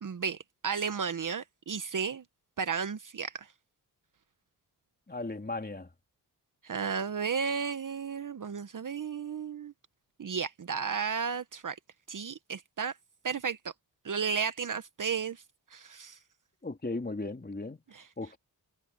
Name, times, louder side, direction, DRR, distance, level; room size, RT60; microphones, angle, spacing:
voice 1, 0.0-2.2 2.6-3.5 6.6-9.7 10.2-11.8 12.1-12.9 13.2-13.6 14.0-15.4 15.7-16.2 17.9-18.0, right 6 dB, 50° right, 1.0 m, -33 dB
voice 2, 5.1-5.9 16.6-17.8 18.2-18.4, left 2 dB, 25° left, 3.6 m, -36 dB
cardioid pair, 70°, 42 cm